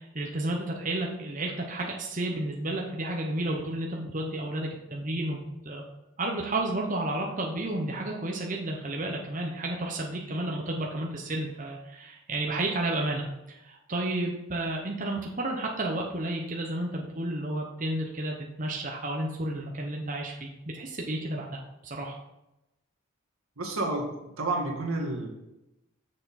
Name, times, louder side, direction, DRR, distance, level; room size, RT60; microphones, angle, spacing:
voice 1, 0.0-5.8 6.2-22.2, right 1 dB, 40° right, 0 dB, 0.9 m, -32 dB
voice 2, 23.6-25.3, right 2 dB, 85° right, 0 dB, 1.8 m, -30 dB
6.8 x 6.5 x 4.2 m, 0.92 s
head